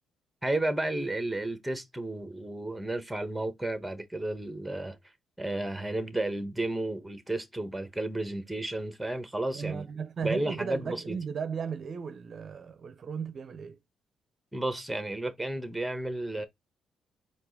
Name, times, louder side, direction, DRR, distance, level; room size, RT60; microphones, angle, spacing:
voice 1, 0.4-5.0 5.4-9.8 10.2-11.2 14.5-16.5, right 2 dB, 5° right, 1.2 m, -32 dB
voice 2, 9.5-13.8, right 6 dB, 50° right, 0.5 m, -36 dB
4.5 x 2.4 x 4.0 m
cardioid pair, 90°, 0 cm